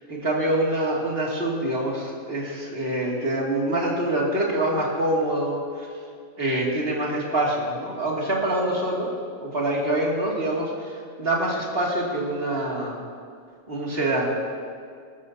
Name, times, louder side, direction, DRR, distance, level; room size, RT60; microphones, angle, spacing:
voice 1, 0.1-5.9 6.4-9.1 9.4-13.0 13.7-14.4, right 1 dB, 45° right, -4 dB, 2.6 m, -25 dB
19.5 x 13.0 x 2.8 m, 2.2 s
omnidirectional pair, 1.4 m